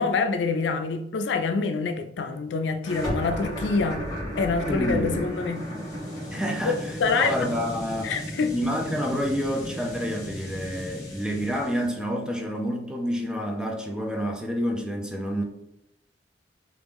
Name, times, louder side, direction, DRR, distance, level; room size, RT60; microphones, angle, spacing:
voice 1, 0.0-4.1 4.4-5.7 6.6-6.7 7.0-7.3 8.0-8.5, left 4 dB, 80° left, 0.4 m, -26 dB
sound 1, 2.8-12.0, equal, 25° left, 1.4 m, -35 dB
voice 2, 4.7-5.2 6.3-8.1 8.5-15.4, equal, 5° right, 0.4 m, -28 dB
3.1 x 2.5 x 3.5 m
head